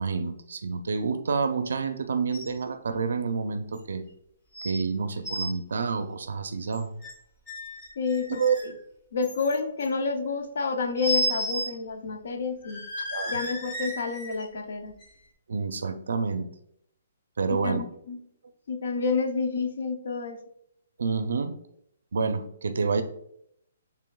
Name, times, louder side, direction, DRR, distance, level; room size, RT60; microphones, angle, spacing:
voice 1, 0.0-4.0 4.6-6.9 8.3-8.6 13.1-13.4 15.5-16.5 17.4-17.8 21.0-21.6 22.1-23.0, right 5 dB, 75° right, 8 dB, 0.4 m, -28 dB
sound 1, 2.3-2.6 2.9-3.0 3.7-3.8 4.5-4.8 5.1-5.5 6.6-7.1 7.5-8.7 9.2-9.8 11.0-11.7 12.1-12.2 12.6-14.4 15.0-15.1, equal, 20° left, 1.2 m, -33 dB
voice 2, 8.0-8.7 9.1-12.8 13.3-15.0 17.5-18.2 18.7-20.4, left 4 dB, 60° left, 7 dB, 0.6 m, -29 dB
6.6 x 3.4 x 2.3 m, 0.73 s
hypercardioid pair, 175°, 0 cm